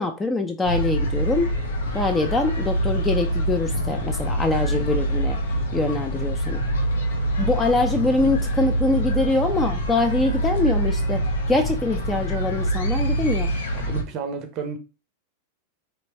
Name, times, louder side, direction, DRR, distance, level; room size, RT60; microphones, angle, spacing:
voice 1, 0.0-1.5 1.9-5.4 5.7-6.6 7.4-13.5, left 2 dB, 15° left, 0.4 m, -24 dB
sound 1, 0.6-14.0, right 1 dB, 60° left, 0.6 m, -25 dB
voice 2, 13.7-14.8, right 5 dB, 40° right, 0.6 m, -31 dB
3.3 x 2.8 x 2.7 m
figure-of-eight pair, 90°, 0 cm